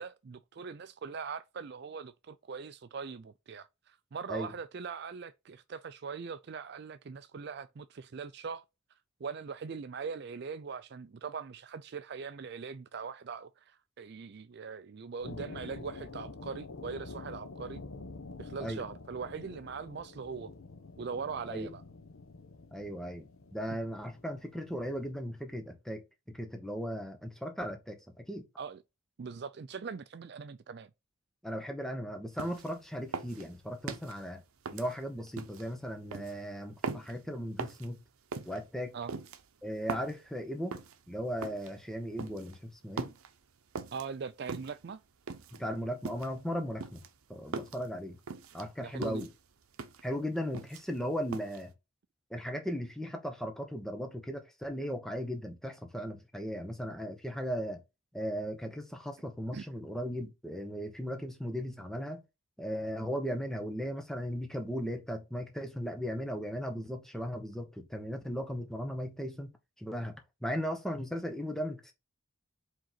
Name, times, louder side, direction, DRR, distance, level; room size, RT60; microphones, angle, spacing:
voice 1, 0.0-8.6 9.2-17.8 18.4-20.5 21.0-21.8 28.6-28.8 29.2-30.9 38.9-39.1 43.9-45.0 48.8-49.3 59.5-59.6, right 5 dB, 50° right, 0.4 m, -41 dB
sound 1, 15.2-25.1, left 3 dB, 80° left, 0.9 m, -47 dB
voice 2, 22.7-28.5 31.4-34.4 34.7-38.0 38.5-38.9 39.6-40.8 41.1-43.1 45.5-47.0 47.3-48.2 48.5-49.3 50.0-51.7 52.3-57.8 58.1-62.2 62.6-69.5 69.8-71.9, equal, ahead, 1.0 m, -37 dB
sound 2, 32.4-32.7 33.1-34.2 34.7-35.7 36.1-36.3 36.8-37.2 37.6-37.9 38.3-38.6 39.1-40.2 40.7-41.0 41.4-41.7 42.2-42.6 43.0-43.3 43.8-44.1 44.5-44.8 45.3-45.6 46.0-46.4 46.8-47.9 48.3-48.6 49.0-49.3 49.7-50.0 50.4-51.0 51.3-51.6, right 4 dB, 85° right, 0.7 m, -40 dB
5.1 x 3.8 x 5.8 m
head